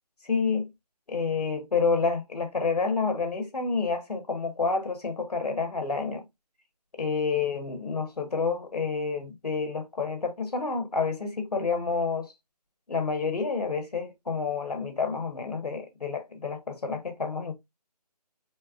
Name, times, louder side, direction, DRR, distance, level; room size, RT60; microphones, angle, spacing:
voice 1, 0.2-0.6 1.1-6.2 7.0-12.3 12.9-17.5, left 4 dB, 70° left, 1.1 m, -29 dB
4.5 x 3.2 x 2.3 m
figure-of-eight pair, 155°, 21 cm